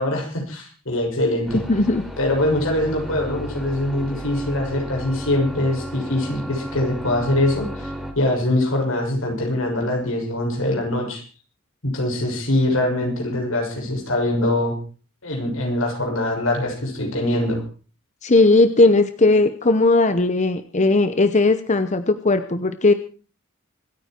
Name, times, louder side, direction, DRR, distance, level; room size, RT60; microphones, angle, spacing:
voice 1, 0.0-1.6 2.2-7.9 8.1-11.2 11.8-14.8 15.2-17.6, left 1 dB, 75° left, 1 dB, 6.4 m, -23 dB
sound 1, 1.5-8.1, equal, ahead, 3.5 m, -33 dB
voice 2, 1.7-2.0 18.2-22.9, left 2 dB, 35° left, 10 dB, 0.9 m, -17 dB
26.0 x 9.5 x 4.5 m, 0.38 s
head